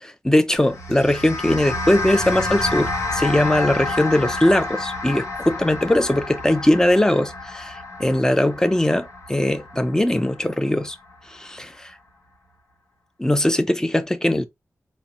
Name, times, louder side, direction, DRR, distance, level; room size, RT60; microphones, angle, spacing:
voice 1, 0.0-11.0 11.3-11.9 13.2-14.4, left 1 dB, 10° left, 0.5 m, -20 dB
sound 1, 0.6-11.1, left 2 dB, 70° left, 0.9 m, -29 dB
4.1 x 2.2 x 2.7 m
wide cardioid pair, 65°, 5 cm